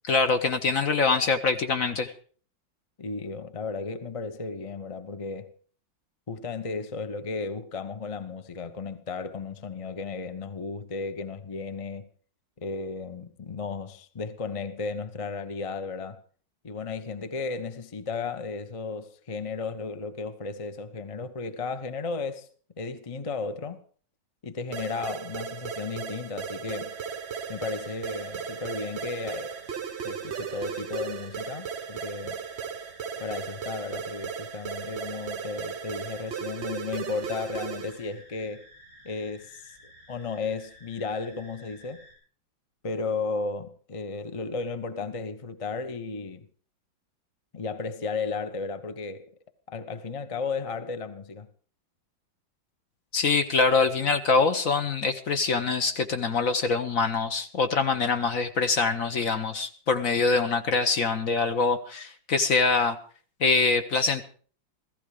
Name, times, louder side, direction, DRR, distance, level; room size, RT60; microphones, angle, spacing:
voice 1, 0.0-2.1 53.1-63.0 63.4-64.2, left 4 dB, 50° left, 1.3 m, -24 dB
voice 2, 3.0-5.6 6.3-12.1 12.6-16.2 16.6-22.5 22.8-23.8 24.4-27.0 27.5-29.6 30.0-32.4 33.2-38.7 39.0-39.8 40.1-42.0 42.8-46.5 47.5-49.3 49.7-51.5 59.2-59.3, left 4 dB, 30° left, 0.6 m, -34 dB
sound 1, 24.7-38.1, right 7 dB, 50° right, 0.8 m, -36 dB
sound 2, 26.9-42.1, equal, 75° left, 8.0 m, -53 dB
15.5 x 15.0 x 4.9 m
omnidirectional pair, 2.1 m